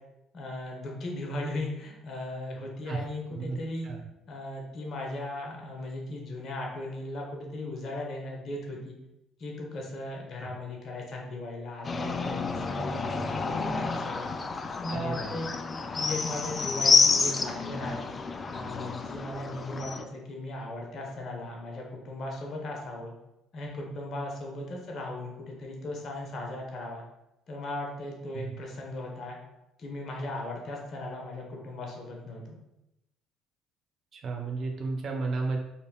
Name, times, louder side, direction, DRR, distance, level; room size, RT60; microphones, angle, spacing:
voice 1, 0.3-3.9 4.3-9.0 9.4-14.3 14.8-15.5 15.9-18.1 18.5-23.1 23.5-27.0 27.5-29.4 29.8-32.5, left 1 dB, 50° left, 0 dB, 1.1 m, -37 dB
sound 1, 11.8-20.0, left 4 dB, 35° left, 0.4 m, -29 dB
voice 2, 14.9-15.3 28.3-28.6 34.1-35.6, right 3 dB, 50° right, 2 dB, 0.7 m, -33 dB
4.4 x 3.3 x 2.3 m, 0.91 s
hypercardioid pair, 55°, 0 cm